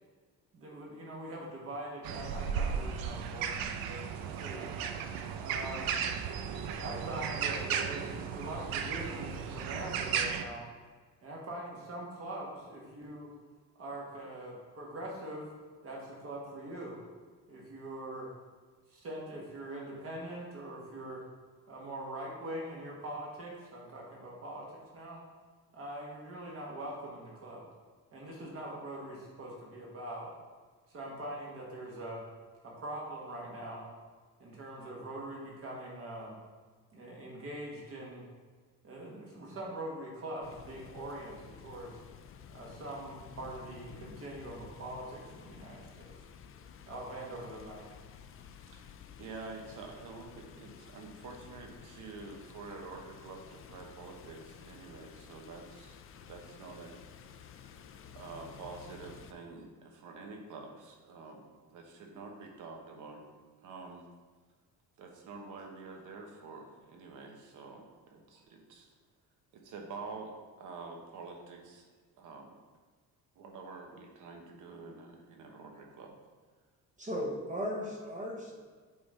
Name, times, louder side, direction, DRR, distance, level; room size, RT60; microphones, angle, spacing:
voice 1, 0.5-4.7 5.4-6.0 6.8-10.6 11.2-13.3 13.8-15.5 15.8-17.0 17.5-18.3 18.9-21.2 21.7-25.2 25.7-27.6 28.1-30.3 30.9-32.2 32.6-33.8 34.4-36.4 36.9-38.2 38.8-42.0 42.5-46.1 46.9-47.9, right 1 dB, 40° right, -3 dB, 1.4 m, -43 dB
sound 1, 2.0-10.4, right 7 dB, 90° right, 0.6 m, -35 dB
sound 2, 40.4-59.3, left 7 dB, 40° left, 0.4 m, -52 dB
voice 2, 49.2-56.0 56.3-57.0 57.5-57.7 58.1-61.5 61.7-63.2 63.6-64.1 65.0-68.9 69.5-71.8 72.2-72.5 73.4-76.1, right 4 dB, 60° right, 2 dB, 1.2 m, -47 dB
voice 3, 77.0-78.6, equal, 20° right, -2 dB, 0.8 m, -36 dB
8.5 x 3.7 x 4.2 m, 1.5 s
cardioid pair, 175°, 35 cm